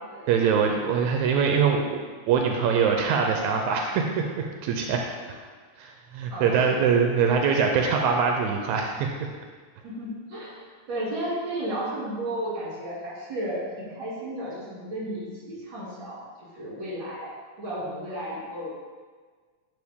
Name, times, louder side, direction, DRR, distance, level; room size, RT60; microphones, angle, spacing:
voice 1, 0.3-2.0 2.3-5.0 5.8-9.3, right 6 dB, 85° right, 2 dB, 2.0 m, -23 dB
voice 2, 6.3-6.9 9.8-16.2 16.6-17.3 17.6-18.7, right 1 dB, 40° right, -7 dB, 3.3 m, -33 dB
11.0 x 4.6 x 3.7 m, 1.5 s
omnidirectional pair, 3.3 m